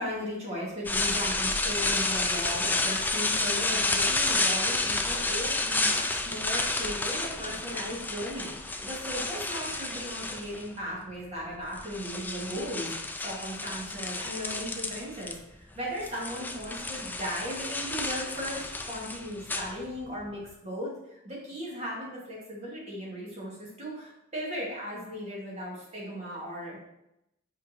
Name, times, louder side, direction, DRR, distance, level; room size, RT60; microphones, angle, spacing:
voice 1, 0.0-12.9 13.2-20.9 21.2-26.8, equal, 30° right, -5 dB, 2.3 m, -37 dB
sound 1, 0.9-10.8 11.5-15.4 15.6-20.2, left 2 dB, 10° left, 0.4 m, -30 dB
5.4 x 4.6 x 4.3 m, 0.85 s
head